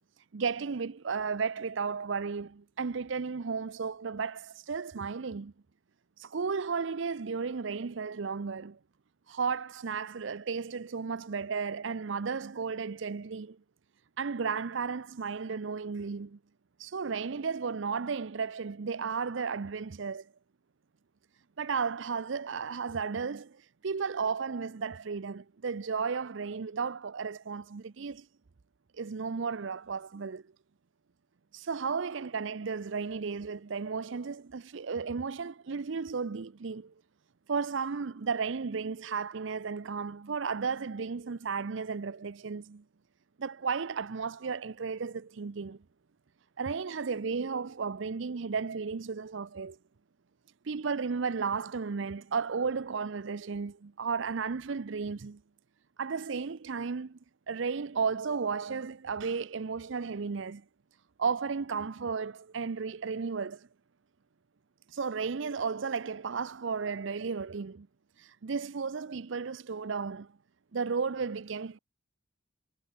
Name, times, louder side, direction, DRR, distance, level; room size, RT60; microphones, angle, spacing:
voice 1, 0.3-5.5 6.2-8.8 9.3-13.6 14.2-16.4 16.8-20.3 21.6-28.3 28.9-30.4 31.5-36.9 37.5-42.8 43.4-45.8 46.6-49.8 50.6-55.4 56.0-57.2 57.5-60.6 61.2-63.7 64.9-67.9 68.2-70.3 70.7-71.8, right 5 dB, 65° right, 0.6 m, -34 dB
head